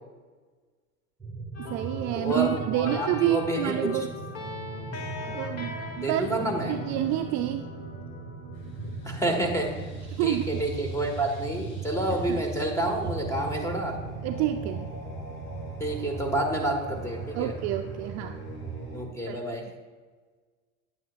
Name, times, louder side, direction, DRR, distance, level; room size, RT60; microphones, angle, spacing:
sound 1, 1.2-18.9, right 4 dB, 10° right, 1.3 m, -39 dB
sound 2, 1.5-15.0, left 2 dB, 40° left, 1.5 m, -42 dB
voice 1, 1.6-4.1 5.2-6.3 6.7-7.6 10.1-10.6 12.3-12.4 14.2-14.9 17.3-18.4 19.3-19.4, right 13 dB, 45° right, 7 dB, 0.5 m, -28 dB
voice 2, 2.1-4.0 6.0-6.8 9.0-9.7 10.2-14.0 15.8-17.5 18.9-19.6, right 1 dB, 5° left, 2 dB, 1.6 m, -29 dB
sound 3, 8.5-19.0, equal, 60° left, 2.8 m, -43 dB
9.3 x 9.2 x 2.5 m, 1.4 s
hypercardioid pair, 105°, 39 cm